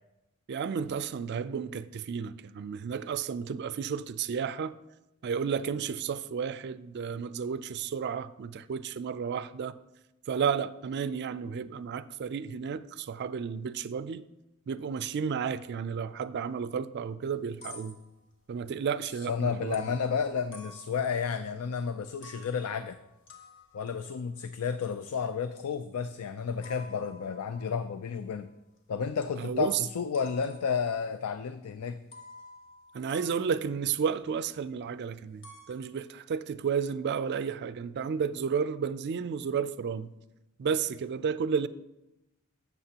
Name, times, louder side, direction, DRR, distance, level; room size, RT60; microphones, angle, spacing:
voice 1, 0.5-4.7 5.2-9.8 10.3-14.2 14.7-18.0 18.5-19.9 29.4-29.8 32.9-40.1 40.6-41.7, right 6 dB, 50° right, 0.3 m, -32 dB
sound 1, 17.2-18.6 19.7-21.6 22.0-28.8 29.2-29.7 30.1-31.2 31.6-31.7 32.1-34.9 35.1-35.8, left 2 dB, 60° left, 1.3 m, -52 dB
voice 2, 19.3-23.0 23.7-28.5 28.9-32.0, left 6 dB, 85° left, 0.4 m, -32 dB
12.5 x 7.2 x 2.9 m
head